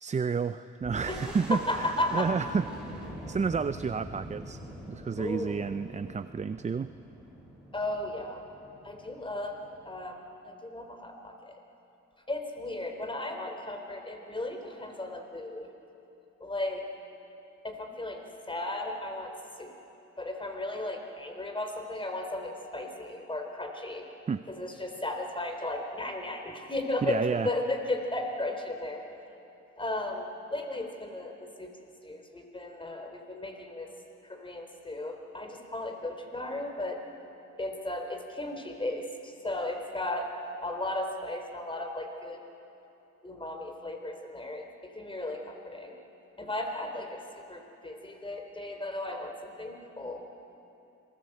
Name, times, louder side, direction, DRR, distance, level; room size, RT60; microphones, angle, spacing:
voice 1, 0.0-4.6 4.9-6.9 24.3-24.5 27.0-27.5, right 5 dB, 25° right, 12 dB, 0.5 m, -31 dB
sound 1, 0.8-10.0, right 1 dB, 5° right, 6.2 m, -44 dB
voice 2, 1.1-2.3 5.2-5.7 7.7-8.4 8.8-9.6 9.8-11.6 12.3-15.7 16.4-16.9 17.6-19.3 19.6-19.7 20.2-24.1 24.5-29.0 29.8-31.8 32.0-33.9 34.2-37.0 37.6-40.3 40.6-42.4 43.2-46.0 46.4-47.2 47.5-50.2, left 2 dB, 15° left, 4 dB, 3.7 m, -35 dB
27.0 x 20.5 x 7.9 m, 2.9 s
cardioid pair, 90°, 30 cm